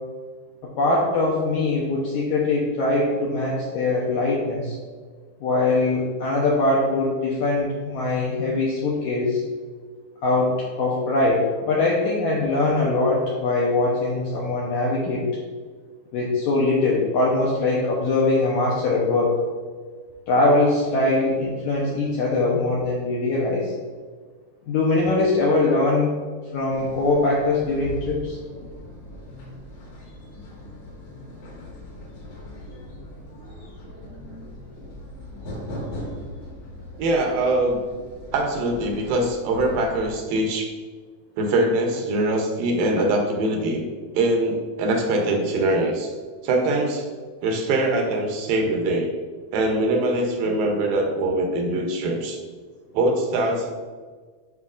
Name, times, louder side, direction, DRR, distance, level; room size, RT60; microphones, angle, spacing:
voice 1, 0.8-4.8 5.4-9.4 10.2-15.3 16.1-19.3 20.3-23.7 24.7-26.1 26.5-28.4, left 2 dB, 80° left, -4 dB, 1.7 m, -22 dB
sound 1, 26.7-40.1, left 1 dB, 60° left, 2.6 m, -39 dB
voice 2, 37.0-37.8 38.3-40.7 41.4-43.8 44.1-46.1 46.4-47.1 47.4-49.1 49.5-52.4 52.9-53.7, right 2 dB, 75° right, 2 dB, 2.4 m, -23 dB
9.7 x 4.3 x 2.4 m, 1.5 s
omnidirectional pair, 4.2 m